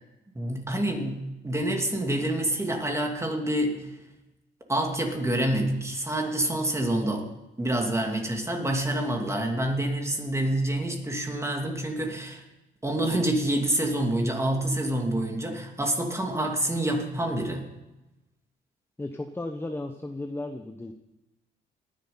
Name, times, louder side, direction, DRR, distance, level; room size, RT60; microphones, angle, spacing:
voice 1, 0.3-3.8 4.7-7.3 7.6-12.4 12.8-17.7, right 1 dB, 15° right, 2 dB, 2.7 m, -27 dB
voice 2, 19.0-20.9, left 2 dB, 10° left, 6 dB, 0.9 m, -34 dB
18.5 x 10.5 x 5.6 m, 1.0 s
cardioid pair, 90°, 20 cm